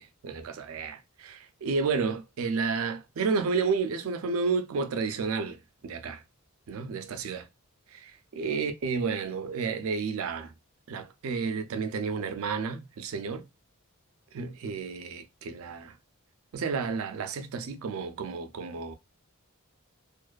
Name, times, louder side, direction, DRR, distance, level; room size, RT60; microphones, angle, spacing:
voice 1, 0.0-6.2 6.7-7.5 8.3-10.5 10.9-13.5 14.3-16.0 16.5-18.9, right 5 dB, 65° right, 0.4 m, -31 dB
2.4 x 2.3 x 2.3 m
head